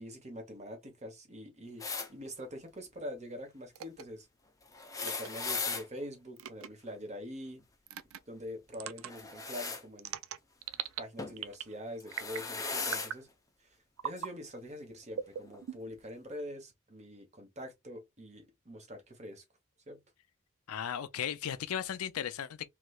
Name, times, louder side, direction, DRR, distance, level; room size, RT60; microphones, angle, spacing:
voice 1, 0.0-4.3 5.0-7.6 8.3-10.2 11.0-13.3 13.6-13.8 14.0-19.4 19.9-20.0, equal, 30° right, 1.1 m, -44 dB
sound 1, 1.8-2.1 4.7-5.9 9.1-9.8 11.2-11.4 12.0-13.1 14.2-14.3 15.5-15.6, left 4 dB, 15° left, 0.6 m, -37 dB
sound 2, 3.7-4.0 5.0-5.3 6.4-6.7 7.9-8.2 8.7-9.1 10.0-11.0 11.4-11.7 12.1-12.5 12.9-13.2 14.0-14.3 15.1-16.0, right 9 dB, 65° right, 0.4 m, -40 dB
voice 2, 20.7-22.7, left 9 dB, 75° left, 0.4 m, -36 dB
3.2 x 3.0 x 2.3 m
head